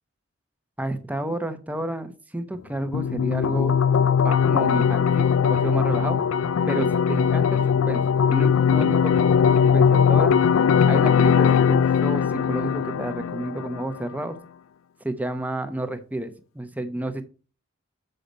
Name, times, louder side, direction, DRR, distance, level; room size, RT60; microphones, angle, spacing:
voice 1, 0.8-3.8 4.2-6.2 6.7-8.0 8.3-10.3 10.9-14.4 15.0-17.2, right 1 dB, 10° right, 9 dB, 0.8 m, -30 dB
sound 1, 2.9-13.9, left 7 dB, 75° left, 0.4 m, -20 dB
6.7 x 5.7 x 5.2 m, 0.35 s
head